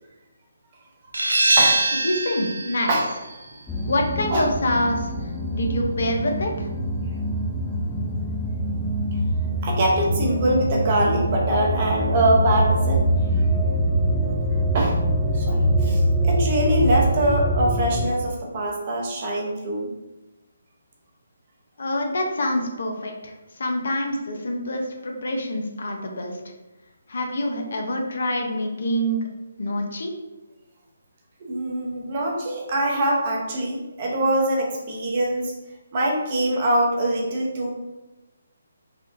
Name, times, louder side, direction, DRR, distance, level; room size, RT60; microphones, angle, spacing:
sound 1, 1.1-6.6, right 2 dB, 80° right, 0.4 m, -25 dB
voice 1, 2.0-2.9 3.9-5.1 5.5-6.7 21.8-26.4 27.1-29.2 29.6-30.1, left 1 dB, 65° left, 2 dB, 0.6 m, -26 dB
sound 2, 3.7-18.1, right 1 dB, 10° left, 0.3 m, -24 dB
voice 2, 9.6-13.0 14.7-14.9 15.3-19.9 31.4-35.5 35.9-37.7, right 1 dB, 40° right, -2 dB, 0.8 m, -23 dB
3.6 x 2.3 x 2.6 m, 1.1 s
figure-of-eight pair, 145°, 0 cm